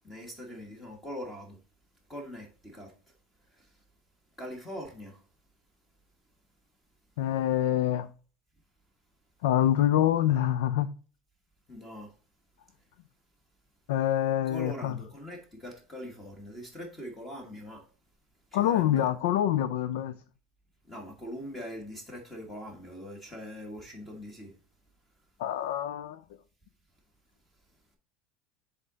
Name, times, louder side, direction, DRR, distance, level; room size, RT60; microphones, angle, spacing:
voice 1, 0.0-1.6 2.1-2.9 3.6-3.7 4.4-5.2 11.7-12.1 14.5-17.8 18.5-19.1 20.9-24.5, equal, 10° left, 1.5 m, -42 dB
voice 2, 7.2-8.1 9.4-10.9 13.9-15.0 18.5-20.1 25.4-26.2, left 11 dB, 80° left, 0.4 m, -26 dB
7.6 x 3.7 x 4.0 m
supercardioid pair, 150°, 0 cm